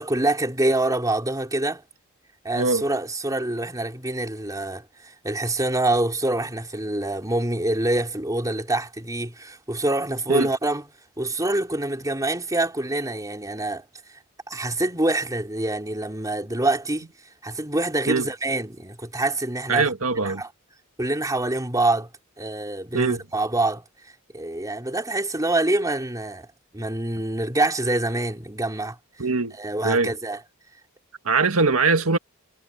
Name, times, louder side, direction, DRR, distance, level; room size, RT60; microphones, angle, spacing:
voice 1, 0.0-1.8 2.4-10.8 11.2-13.8 14.5-17.1 17.4-19.9 20.2-20.5 21.0-22.1 22.4-23.8 24.3-26.5 26.7-29.0 29.6-30.4, right 2 dB, 15° right, 3.8 m, -25 dB
voice 2, 19.7-20.4 22.9-23.2 29.2-29.6 29.8-30.1 31.3-32.2, right 4 dB, 65° right, 1.9 m, -22 dB
head